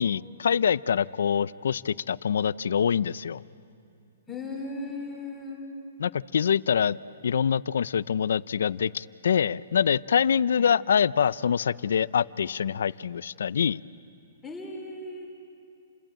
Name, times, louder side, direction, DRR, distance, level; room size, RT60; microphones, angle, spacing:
voice 1, 0.0-3.4 6.0-7.0 7.2-13.8, left 7 dB, 75° left, 18 dB, 0.5 m, -25 dB
voice 2, 4.3-5.6 10.6-10.7 14.4-15.3, left 2 dB, 10° left, -2 dB, 3.4 m, -37 dB
29.5 x 21.5 x 8.9 m, 2.5 s
hypercardioid pair, 150°, 0 cm